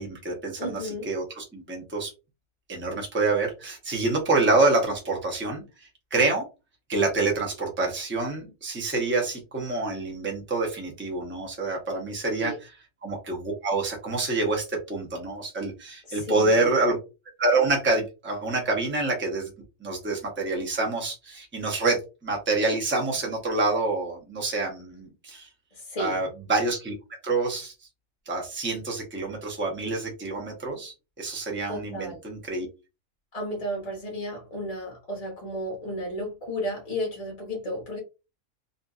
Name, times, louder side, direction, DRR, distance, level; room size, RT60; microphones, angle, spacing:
voice 1, 0.0-2.1 2.7-6.4 6.9-12.7 13.0-17.0 17.4-19.5 19.8-25.5 26.0-26.9 27.2-27.7 28.3-32.7, right 3 dB, 15° right, 0 dB, 0.5 m, -27 dB
voice 2, 0.6-1.1 12.4-12.6 16.1-16.7 25.7-26.2 31.7-32.2 33.3-38.0, equal, 35° left, -1 dB, 0.6 m, -33 dB
2.5 x 2.5 x 2.3 m, 0.28 s
omnidirectional pair, 1.5 m